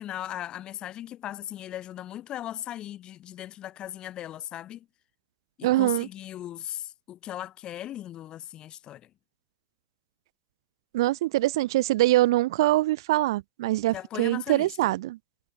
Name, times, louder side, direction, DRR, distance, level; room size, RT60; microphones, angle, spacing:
voice 1, 0.0-4.9 5.6-9.1 13.9-14.9, left 12 dB, 35° left, 5.9 m, -38 dB
voice 2, 5.6-6.1 10.9-15.2, right 17 dB, 70° right, 0.5 m, -24 dB
hypercardioid pair, 120°, 3 cm